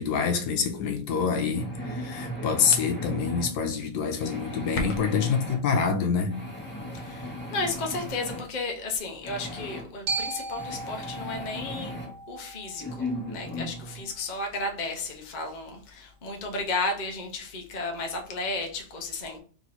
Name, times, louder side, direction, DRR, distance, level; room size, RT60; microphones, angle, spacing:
voice 1, 0.0-6.4, left 6 dB, 80° left, 1.2 m, -26 dB
sound 1, 1.5-3.5 4.2-5.6 6.3-8.4 9.2-9.8 10.6-12.1 12.8-14.0, equal, 5° left, 1.3 m, -36 dB
voice 2, 6.9-11.9 12.3-19.4, left 3 dB, 45° left, 0.6 m, -33 dB
Glockenspiel, 10.1-14.2, right 3 dB, 85° right, 1.5 m, -37 dB
3.5 x 3.0 x 4.1 m
omnidirectional pair, 1.7 m